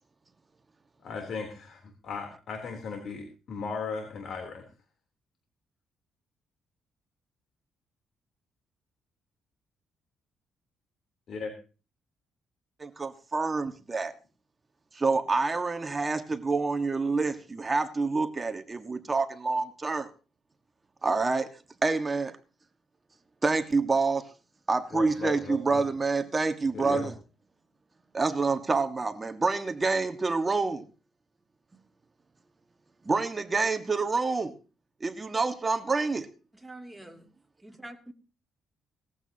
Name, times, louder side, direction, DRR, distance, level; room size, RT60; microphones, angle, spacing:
voice 1, 1.0-4.7 11.3-11.5 24.9-25.8 26.7-27.1, left 5 dB, 60° left, 3.4 m, -37 dB
voice 2, 12.8-14.1 14.9-20.1 21.0-21.5 21.8-22.4 23.4-24.3 24.7-27.1 28.1-30.9 33.1-34.5 35.0-36.3 37.0-37.1, right 3 dB, 25° right, 1.6 m, -27 dB
voice 3, 36.5-37.3 37.6-38.1, right 1 dB, 5° right, 2.7 m, -45 dB
19.5 x 14.5 x 2.9 m
cardioid pair, 95°, 0 cm